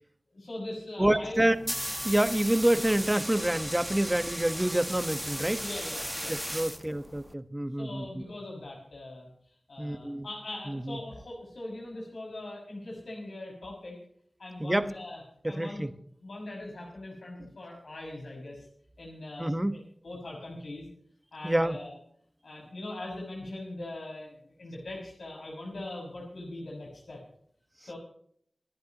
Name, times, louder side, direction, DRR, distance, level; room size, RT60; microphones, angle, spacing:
voice 1, 0.3-1.4 5.6-6.3 6.6-6.7 7.8-9.3 9.7-14.0 14.4-15.2 15.5-15.9 16.2-18.7 19.0-20.9 21.3-22.0 22.4-27.2 27.8-28.0, left 1 dB, 85° left, -2 dB, 6.4 m, -41 dB
voice 2, 1.0-1.5 2.0-5.6 6.3-8.1 9.8-10.3 10.7-11.0 14.6-14.9 15.4-15.9 19.4-19.7 21.4-21.8, right 1 dB, 20° right, 10 dB, 1.4 m, -27 dB
sound 1, 1.3-7.3, equal, 5° right, 1.3 m, -36 dB
26.0 x 11.0 x 3.1 m, 0.65 s
cardioid pair, 40°, 0 cm